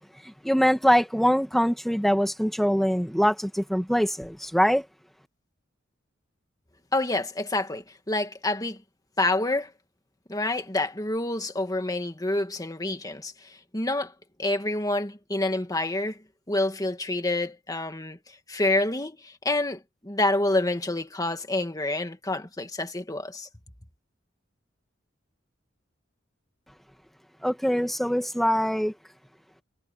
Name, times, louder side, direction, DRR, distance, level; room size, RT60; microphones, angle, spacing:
voice 1, 0.2-4.9 27.4-28.9, equal, ahead, 2.0 m, -23 dB
voice 2, 6.9-8.8 9.2-9.7 10.3-14.1 14.4-16.2 16.5-18.2 18.5-23.5, left 2 dB, 20° left, 2.0 m, -28 dB
head